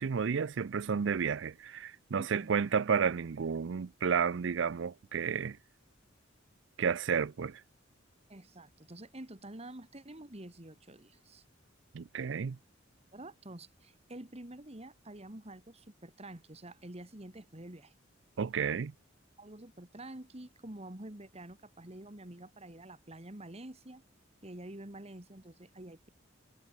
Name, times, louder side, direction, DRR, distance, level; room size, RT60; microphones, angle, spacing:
voice 1, 0.0-5.6 6.8-7.6 11.9-12.6 18.4-18.9, right 6 dB, 65° right, 0.5 m, -31 dB
voice 2, 2.2-2.6 8.3-11.4 13.1-17.9 19.4-24.0 24.4-26.1, right 1 dB, 30° right, 2.1 m, -48 dB
head